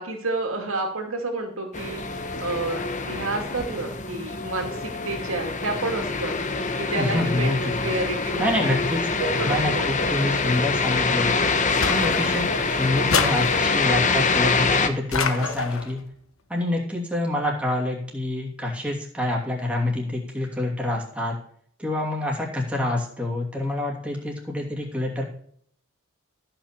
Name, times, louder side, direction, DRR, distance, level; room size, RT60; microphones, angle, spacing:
voice 1, 0.0-2.0 2.4-6.4 6.8-8.7 9.2-9.9, right 2 dB, 70° right, 3 dB, 2.5 m, -30 dB
sound 1, 1.7-14.9, left 4 dB, 35° left, 1.0 m, -25 dB
voice 2, 7.0-7.9 8.4-9.0 9.3-11.3 11.9-16.0 16.5-21.4 21.8-25.2, left 1 dB, 5° right, -2 dB, 2.7 m, -27 dB
sound 2, 11.8-12.6 13.1-14.0 15.1-15.9, left 5 dB, 65° left, 1.2 m, -27 dB
14.0 x 6.0 x 6.7 m, 0.62 s
head